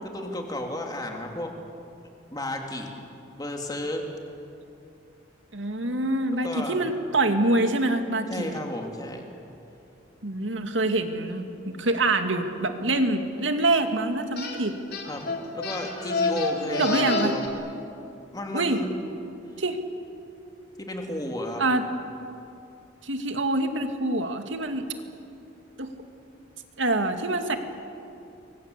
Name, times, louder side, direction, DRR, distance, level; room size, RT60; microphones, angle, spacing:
voice 1, 0.0-1.6 2.3-2.9 3.4-4.0 5.8-6.0 6.4-6.8 8.3-9.3 15.1-17.4 18.3-19.0 20.8-21.6, left 1 dB, 20° left, 2 dB, 3.0 m, -33 dB
voice 2, 5.5-8.6 10.2-14.8 16.8-17.3 18.5-18.8 19.6-19.8 21.6-21.9 23.0-24.8 25.8-25.9 26.8-27.6, right 2 dB, 80° right, 6 dB, 2.3 m, -25 dB
sound 1, 14.4-14.6 14.9-17.5, left 3 dB, 55° left, 4.1 m, -28 dB
28.5 x 23.5 x 8.3 m, 2.7 s
head